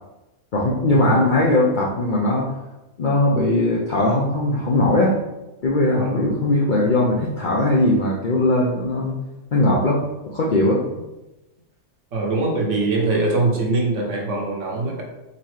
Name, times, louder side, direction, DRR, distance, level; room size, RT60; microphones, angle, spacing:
voice 1, 0.5-2.5 3.0-5.2 5.6-9.1 9.5-10.0 10.3-10.8, left 1 dB, 65° left, -3 dB, 0.4 m, -19 dB
voice 2, 6.0-6.5 12.1-15.0, right 3 dB, 60° right, 0 dB, 1.0 m, -23 dB
4.1 x 4.1 x 3.1 m, 1.0 s
omnidirectional pair, 1.7 m